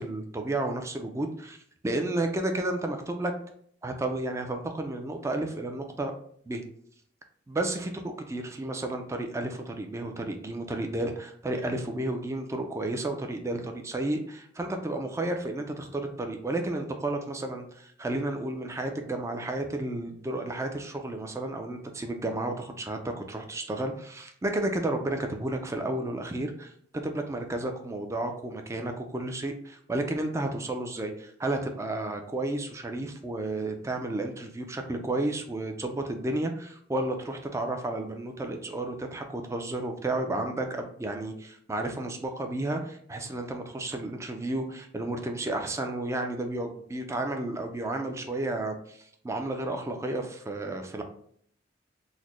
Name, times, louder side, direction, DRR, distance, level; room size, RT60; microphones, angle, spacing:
voice 1, 0.0-1.6 1.8-3.3 3.8-6.1 6.5-6.6 7.5-7.9 8.3-26.7 27.0-51.0, right 2 dB, 15° right, 4 dB, 0.3 m, -32 dB
4.0 x 2.1 x 3.1 m, 0.63 s
head